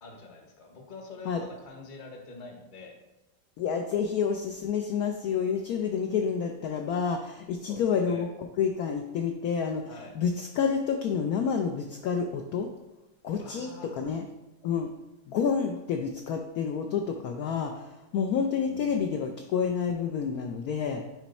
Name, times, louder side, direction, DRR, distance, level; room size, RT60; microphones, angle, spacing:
voice 1, 0.0-3.0 4.0-4.1 7.7-8.3 9.9-10.1 13.4-14.1 18.6-19.3, left 4 dB, 35° left, 2 dB, 0.8 m, -45 dB
voice 2, 3.6-8.3 8.6-9.9 10.2-12.7 13.2-14.2 14.6-14.9 15.3-21.0, left 6 dB, 75° left, 4 dB, 0.8 m, -29 dB
7.1 x 3.1 x 5.4 m, 1.0 s
omnidirectional pair, 2.1 m